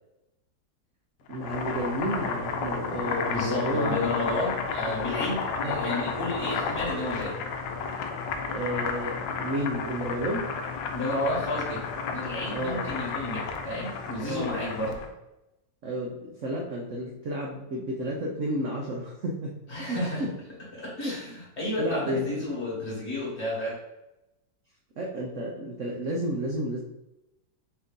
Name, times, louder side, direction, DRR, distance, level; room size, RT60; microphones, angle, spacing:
Boiling, 1.3-15.1, left 5 dB, 75° left, 1.2 m, -32 dB
voice 1, 1.3-4.0 4.3-4.5 5.6-5.7 8.5-10.5 12.5-12.9 14.2-14.7 15.8-20.3 21.0-21.2 21.8-22.4 25.0-26.8, equal, 70° right, -1 dB, 0.7 m, -31 dB
voice 2, 3.2-7.4 10.9-11.8 12.1-15.0 19.7-20.3 20.7-23.8, left 1 dB, 40° left, -5 dB, 1.4 m, -31 dB
4.4 x 2.6 x 3.7 m, 0.92 s
omnidirectional pair, 2.0 m